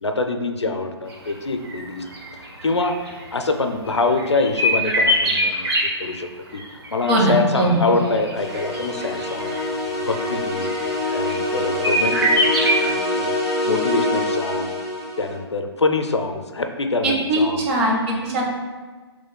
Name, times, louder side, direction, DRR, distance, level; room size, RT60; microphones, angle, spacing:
voice 1, 0.0-2.0 2.6-3.0 3.3-5.7 6.0-6.6 6.9-9.6 10.1-10.7 11.1-13.4 13.6-14.7 15.2-17.6, left 3 dB, 80° left, 6 dB, 0.4 m, -25 dB
sound 1, 1.1-1.3 1.6-1.8 2.1-3.3 3.9-5.8 6.6-9.6 10.1-11.6 11.8-12.9, equal, 60° right, 1.1 m, -23 dB
voice 2, 7.1-7.8 17.0-18.4, right 1 dB, 30° right, -2 dB, 0.8 m, -20 dB
sound 2, 8.3-15.3, left 2 dB, ahead, 0.7 m, -25 dB
6.2 x 3.1 x 2.2 m, 1.4 s
figure-of-eight pair, 130°, 14 cm